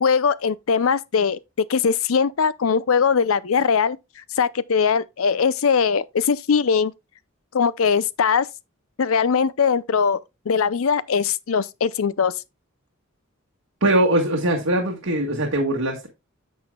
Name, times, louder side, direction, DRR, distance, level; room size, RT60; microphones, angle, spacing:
voice 1, 0.0-1.4 1.7-4.0 4.4-6.9 7.5-8.5 9.0-10.2 10.5-12.3, left 6 dB, 85° left, 0.5 m, -20 dB
voice 2, 13.8-16.1, right 1 dB, 85° right, 1.8 m, -21 dB
10.0 x 6.9 x 2.3 m
head